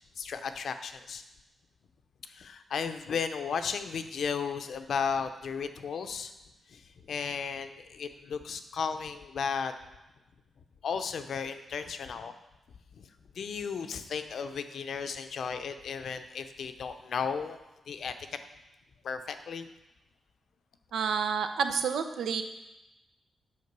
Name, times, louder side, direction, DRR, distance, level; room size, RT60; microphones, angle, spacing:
voice 1, 0.2-1.2 2.3-6.3 6.7-9.7 10.8-12.3 12.9-13.1 13.3-17.6 17.9-18.4 19.0-19.7, left 6 dB, 60° left, 8 dB, 0.7 m, -34 dB
voice 2, 20.9-22.4, right 6 dB, 80° right, 7 dB, 0.8 m, -29 dB
9.7 x 5.1 x 6.7 m, 0.99 s
wide cardioid pair, 165°, 0 cm